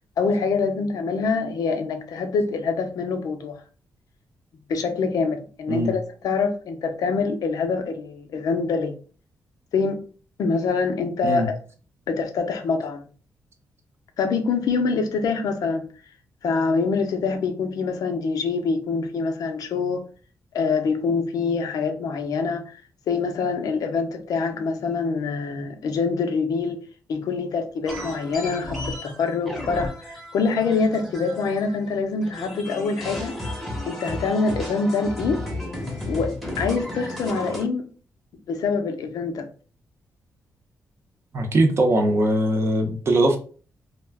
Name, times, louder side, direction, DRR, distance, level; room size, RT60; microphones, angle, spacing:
voice 1, 0.2-3.6 4.7-8.9 9.7-10.0 10.4-11.6 12.1-13.0 14.2-15.9 16.4-20.0 20.5-22.7 23.1-26.8 27.1-33.4 33.9-35.4 36.1-37.9 38.5-39.5, left 4 dB, 80° left, 7 dB, 0.5 m, -25 dB
sound 1, 27.9-31.9 32.2-37.6, left 1 dB, ahead, 0.8 m, -33 dB
voice 2, 41.3-43.4, right 1 dB, 45° right, 4 dB, 0.6 m, -20 dB
2.3 x 2.1 x 3.4 m, 0.39 s
wide cardioid pair, 125°, 6 cm